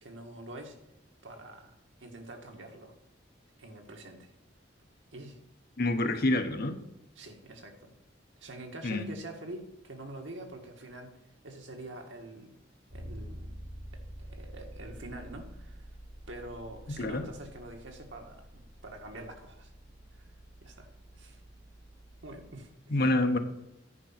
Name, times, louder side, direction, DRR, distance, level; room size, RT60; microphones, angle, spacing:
voice 1, 0.0-0.8 1.2-1.7 2.0-2.9 3.6-4.3 5.1-5.4 7.1-7.9 8.4-12.6 12.9-13.5 13.9-15.9 16.3-19.7 20.1-20.3 20.6-21.4 22.2-23.0, right 1 dB, 85° right, 3 dB, 1.7 m, -46 dB
voice 2, 5.8-6.8 8.8-9.1 17.0-17.2 22.9-23.4, left 2 dB, 55° left, 7 dB, 1.0 m, -27 dB
Bass guitar, 12.9-22.7, equal, 45° right, 3.7 m, -48 dB
9.7 x 5.2 x 5.8 m, 0.89 s
head